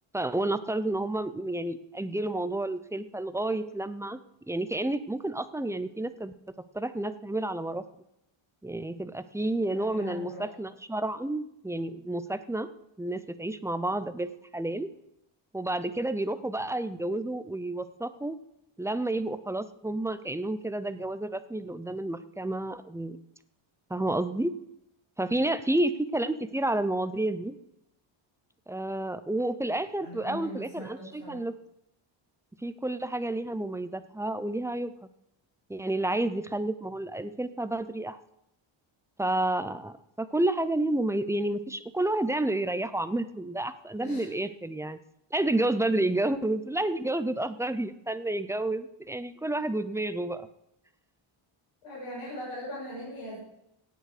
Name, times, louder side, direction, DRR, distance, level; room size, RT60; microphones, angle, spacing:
voice 1, 0.1-4.2 4.5-6.3 6.7-7.8 8.6-12.7 13.0-14.9 15.5-18.4 18.8-23.2 23.9-24.5 25.2-27.5 28.7-31.5 32.6-34.9 35.7-38.2 39.2-45.0 45.3-50.5, right 1 dB, 5° right, 12 dB, 0.4 m, -30 dB
voice 2, 9.7-10.5 25.2-25.5 30.0-31.4 44.0-44.3 45.9-46.0 51.8-53.4, equal, 85° left, -6 dB, 6.7 m, -40 dB
17.0 x 9.3 x 4.9 m, 0.82 s
cardioid pair, 155°, 49 cm